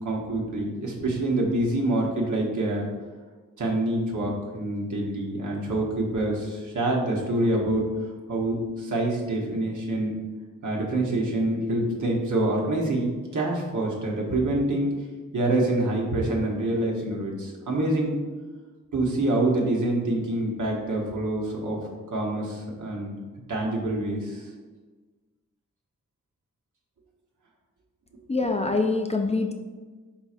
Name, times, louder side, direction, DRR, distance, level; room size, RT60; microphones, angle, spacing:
voice 1, 0.0-2.9 3.6-7.9 8.3-10.1 10.6-14.9 15.3-18.2 18.9-21.8 22.1-23.1 23.5-24.5, right 1 dB, 75° right, -2 dB, 0.9 m, -26 dB
voice 2, 28.3-29.5, left 3 dB, 20° left, 3 dB, 0.4 m, -24 dB
4.3 x 3.9 x 2.4 m, 1.4 s
cardioid pair, 55°, 31 cm